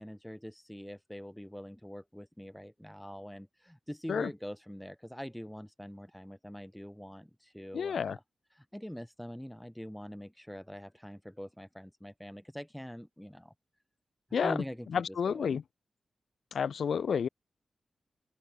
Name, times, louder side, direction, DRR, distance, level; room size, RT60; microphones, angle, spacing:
voice 1, 0.0-8.2 8.5-13.5 14.4-15.6, equal, 5° left, 3.1 m, -44 dB
voice 2, 7.7-8.2 14.3-14.5 14.9-15.6 16.5-17.3, left 7 dB, 85° left, 0.3 m, -30 dB
open air
wide cardioid pair, 145°, 0 cm